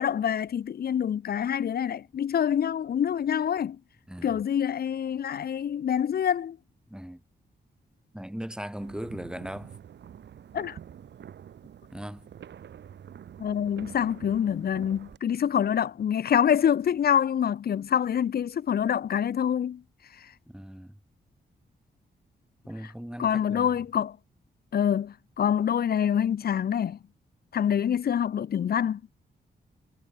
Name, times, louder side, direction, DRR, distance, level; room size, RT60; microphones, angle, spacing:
voice 1, 0.0-3.8 4.2-6.6 10.5-10.8 13.4-19.8 20.2-20.3 23.2-24.2 24.7-27.0 27.5-29.0, left 9 dB, 60° left, 0.7 m, -26 dB
voice 2, 4.1-4.4 6.9-7.2 8.1-9.7 11.9-12.3 20.5-20.9 22.7-23.8, equal, 5° right, 2.5 m, -38 dB
sound 1, 8.8-15.2, right 9 dB, 80° right, 3.2 m, -47 dB
cardioid pair, 85°, 18 cm